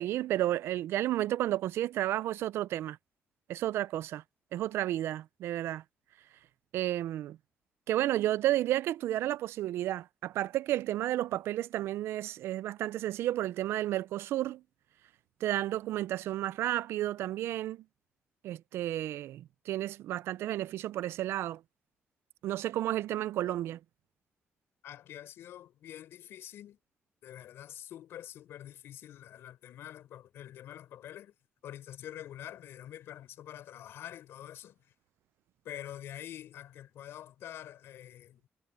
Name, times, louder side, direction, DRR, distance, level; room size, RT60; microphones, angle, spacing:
voice 1, 0.0-3.0 3.5-4.2 4.5-5.8 6.7-7.4 7.9-14.6 15.4-17.8 18.4-21.6 22.4-23.8, right 14 dB, 90° right, 0.4 m, -32 dB
voice 2, 24.8-26.8 27.2-31.3 31.6-34.8 35.6-38.4, left 11 dB, 80° left, 6.4 m, -46 dB
cardioid pair, 140°, 4 cm